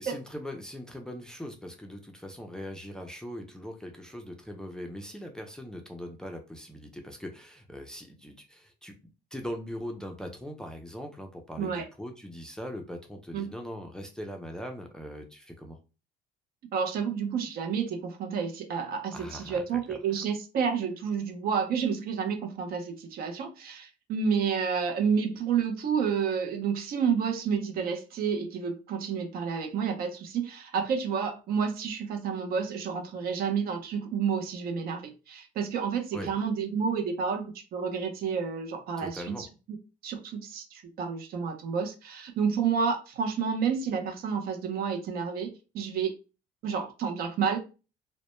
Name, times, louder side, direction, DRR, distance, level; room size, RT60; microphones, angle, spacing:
voice 1, 0.0-8.9 9.3-15.8 19.1-20.0 36.1-36.3 39.0-39.5, equal, 5° left, 0.4 m, -40 dB
voice 2, 16.7-39.3 40.0-46.1 46.6-47.6, right 6 dB, 65° right, 0.5 m, -30 dB
2.1 x 2.0 x 2.9 m
cardioid pair, 110°, 17 cm